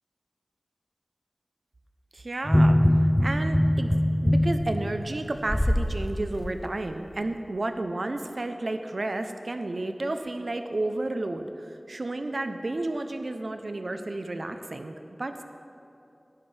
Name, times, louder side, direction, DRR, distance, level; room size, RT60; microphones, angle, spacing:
voice 1, 2.1-15.4, right 2 dB, 70° right, 7 dB, 0.7 m, -32 dB
sound 1, 2.5-5.9 6.4-6.5, left 1 dB, 15° left, 0.9 m, -22 dB
17.5 x 10.5 x 3.4 m, 3.0 s
wide cardioid pair, 55°, 0 cm